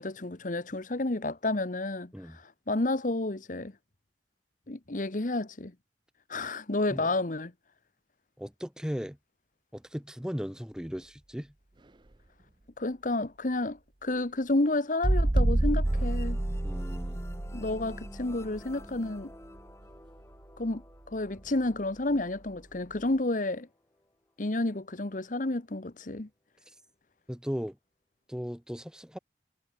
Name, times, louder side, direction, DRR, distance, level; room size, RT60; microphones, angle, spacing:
voice 1, 0.0-3.7 4.7-5.7 6.3-7.5 12.8-16.4 17.5-19.3 20.6-20.8 21.1-23.7 24.4-26.3, left 2 dB, 45° left, 1.2 m, -30 dB
voice 2, 8.4-9.2 9.7-11.5 16.6-17.3 27.3-27.8 28.3-29.2, equal, 5° right, 0.9 m, -37 dB
sound 1, 15.0-19.6 21.4-21.5, right 1 dB, 25° right, 0.7 m, -28 dB
sound 2, 15.8-23.3, left 1 dB, 15° left, 2.1 m, -49 dB
head